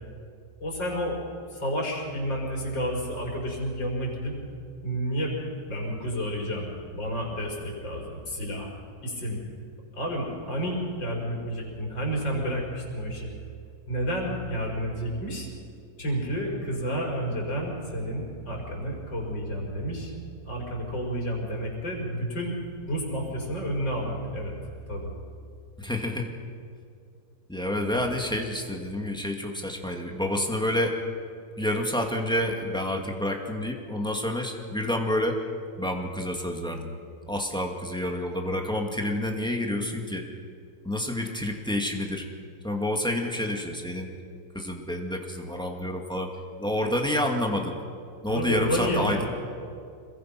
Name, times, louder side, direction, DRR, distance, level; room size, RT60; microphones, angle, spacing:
voice 1, 0.6-1.2 1.5-4.4 4.8-8.7 9.0-9.4 9.9-13.3 13.9-15.5 16.0-20.1 20.5-22.5 22.8-24.5 24.9-25.1 27.9-28.0 48.3-49.3, equal, 90° left, -2 dB, 6.0 m, -30 dB
voice 2, 25.8-26.3 27.5-31.0 31.6-35.4 35.8-36.9 37.3-40.2 40.8-42.3 42.6-44.1 44.5-46.3 46.6-47.8 48.2-49.3, left 1 dB, ahead, 1 dB, 2.1 m, -28 dB
26.0 x 22.0 x 6.0 m, 2.3 s
omnidirectional pair, 2.0 m